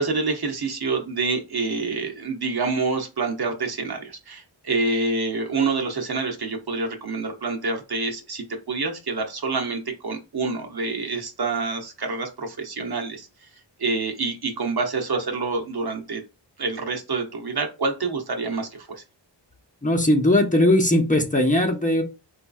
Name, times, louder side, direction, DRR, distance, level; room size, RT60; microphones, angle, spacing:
voice 1, 0.0-13.3 13.8-16.2 16.6-19.0, right 3 dB, 55° right, 2 dB, 0.9 m, -27 dB
voice 2, 19.8-22.0, left 1 dB, 15° left, 1 dB, 0.9 m, -19 dB
4.2 x 2.6 x 2.4 m, 0.28 s
cardioid pair, 45°, 46 cm